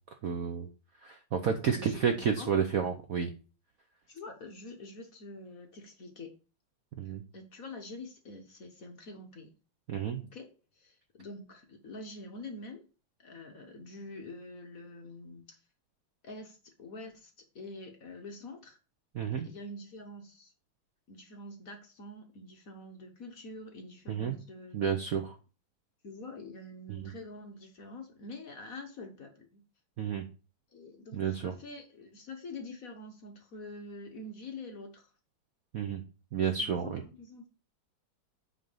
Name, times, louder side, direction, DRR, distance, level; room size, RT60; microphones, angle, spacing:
voice 1, 0.2-0.7 1.0-3.3 7.0-7.2 9.9-10.2 19.1-19.5 24.1-24.4 24.7-25.3 26.9-27.1 30.0-30.2 31.1-31.5 35.7-36.0 36.3-37.0, right 7 dB, 65° right, 0.8 m, -31 dB
voice 2, 1.7-2.5 4.1-6.3 7.0-9.5 10.3-12.8 13.2-15.6 16.2-18.8 19.4-20.5 21.1-24.8 26.0-29.6 30.7-35.1 36.6-37.5, left 2 dB, 50° left, 1.2 m, -46 dB
7.7 x 3.9 x 5.5 m
omnidirectional pair, 2.3 m